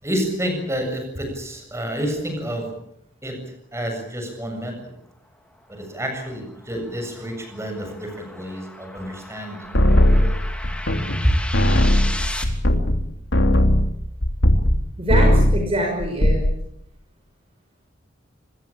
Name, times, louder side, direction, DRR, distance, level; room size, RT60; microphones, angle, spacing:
voice 1, 0.0-2.7 3.2-3.4 3.7-4.7 5.7-10.4, equal, 15° right, 4 dB, 7.6 m, -29 dB
sound 1, 5.6-12.4, left 1 dB, 5° left, 3.0 m, -36 dB
sound 2, 9.7-11.3 11.5-14.8 15.1-15.7 16.0-16.6, left 1 dB, 75° left, 3.2 m, -17 dB
voice 2, 15.0-16.4, right 1 dB, 30° right, 1 dB, 5.9 m, -24 dB
26.0 x 21.0 x 8.7 m, 0.74 s
head